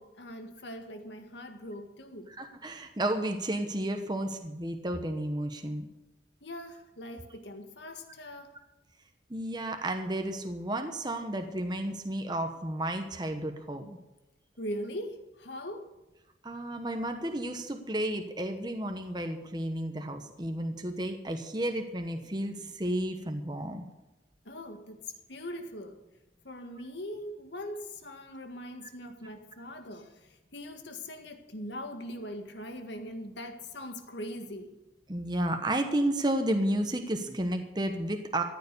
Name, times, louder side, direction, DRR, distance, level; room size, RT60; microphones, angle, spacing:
voice 1, 0.0-2.3 6.4-8.5 14.6-15.9 24.5-26.0 26.4-34.8, equal, 70° left, 5 dB, 1.8 m, -41 dB
voice 2, 2.4-5.9 9.3-14.0 16.4-23.8 35.1-38.4, right 1 dB, 20° right, 5 dB, 1.1 m, -32 dB
14.5 x 9.5 x 6.8 m, 1.0 s
head